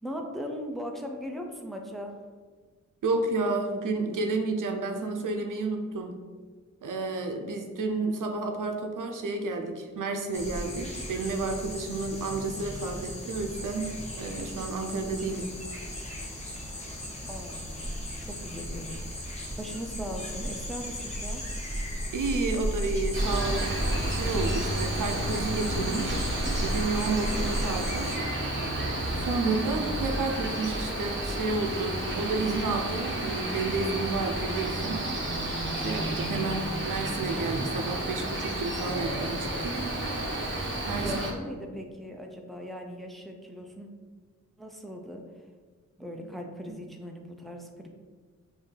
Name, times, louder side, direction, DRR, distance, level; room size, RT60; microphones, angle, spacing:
voice 1, 0.0-2.2 17.3-17.8 18.2-21.4 41.0-43.9 44.6-45.2 46.0-47.9, equal, ahead, 2 dB, 0.5 m, -39 dB
voice 2, 3.0-6.1 6.8-15.5 22.1-26.3 26.5-28.1 29.2-35.1 35.8-39.9 40.9-41.1 41.6-41.7, right 3 dB, 90° right, 3 dB, 0.6 m, -31 dB
sound 1, 10.3-28.1, equal, 20° left, 1.0 m, -35 dB
Cricket, 23.1-41.3, right 1 dB, 40° right, 1.0 m, -31 dB
5.5 x 2.7 x 3.3 m, 1.4 s
wide cardioid pair, 85°, 31 cm